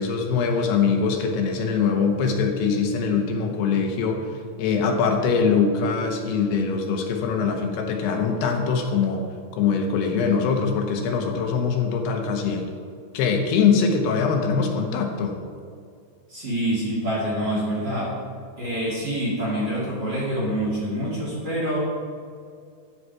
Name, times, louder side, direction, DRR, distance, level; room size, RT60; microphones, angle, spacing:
voice 1, 0.0-4.2 4.6-9.2 9.6-12.7 13.1-15.4, left 5 dB, 80° left, 3 dB, 3.1 m, -22 dB
voice 2, 16.3-18.1 18.6-21.8, right 1 dB, 30° right, -7 dB, 2.6 m, -26 dB
12.5 x 8.0 x 4.7 m, 2.2 s
omnidirectional pair, 4.7 m